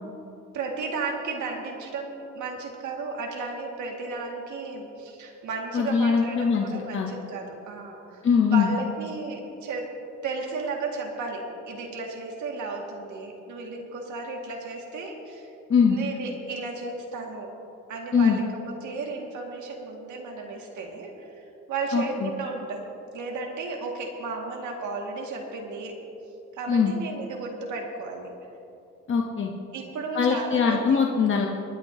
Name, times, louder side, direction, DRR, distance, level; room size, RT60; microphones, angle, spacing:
voice 1, 0.5-9.9 10.2-15.5 15.9-17.5 17.9-26.0 26.5-28.3 29.7-31.0, right 3 dB, 75° right, 0 dB, 2.1 m, -34 dB
voice 2, 5.7-7.1 8.2-8.7 15.7-16.0 18.1-18.4 21.9-22.3 26.7-26.9 29.1-29.5 30.1-31.5, left 6 dB, 40° left, 0 dB, 1.1 m, -22 dB
24.0 x 9.8 x 2.8 m, 2.8 s
cardioid pair, 90°, 30 cm